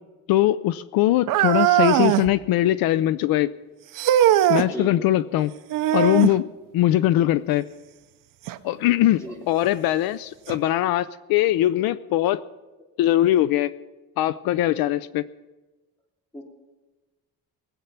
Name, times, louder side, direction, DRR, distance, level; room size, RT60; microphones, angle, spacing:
voice 1, 0.3-3.5 4.5-5.5 5.9-7.7 8.6-12.4 13.0-13.7 14.2-15.3, left 14 dB, 75° left, 16 dB, 0.5 m, -21 dB
sound 1, 1.3-2.3 4.0-4.7 5.7-6.4 8.5-8.6 9.4-9.5 10.5-10.6, right 12 dB, 65° right, 0.7 m, -20 dB
voice 2, 4.6-5.1 9.2-9.4 16.3-16.4, left 1 dB, 10° left, 0 dB, 3.1 m, -34 dB
19.5 x 8.1 x 5.8 m, 1.2 s
cardioid pair, 140°, 36 cm